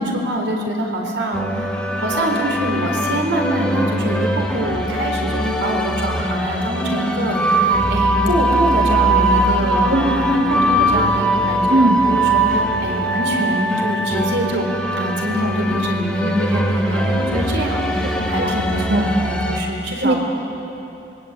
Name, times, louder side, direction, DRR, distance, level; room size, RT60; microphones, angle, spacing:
voice 1, 0.0-14.7 15.0-20.2, right 1 dB, 80° right, 1 dB, 4.3 m, -24 dB
sound 1, 1.3-19.6, right 1 dB, 5° left, 2.4 m, -21 dB
voice 2, 9.9-10.2 11.7-12.0 18.4-18.6 18.9-19.0 20.0-20.2, right 1 dB, 65° right, 1 dB, 3.2 m, -18 dB
26.5 x 22.0 x 8.6 m, 2.8 s
head